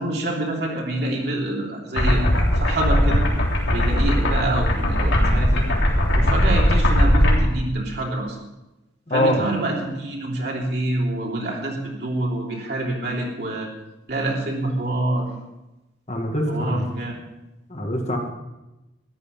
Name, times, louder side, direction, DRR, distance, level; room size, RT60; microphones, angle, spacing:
voice 1, 0.0-3.2 3.7-5.7 6.1-8.4 9.1-13.7 14.1-15.3 16.5-17.2, right 1 dB, 60° right, -2 dB, 3.3 m, -26 dB
sound 1, 2.0-7.4, equal, 80° left, 3.3 m, -19 dB
voice 2, 9.1-9.4 16.1-16.8 17.7-18.2, left 1 dB, 35° left, 1 dB, 2.1 m, -23 dB
13.5 x 11.5 x 5.6 m, 0.98 s
head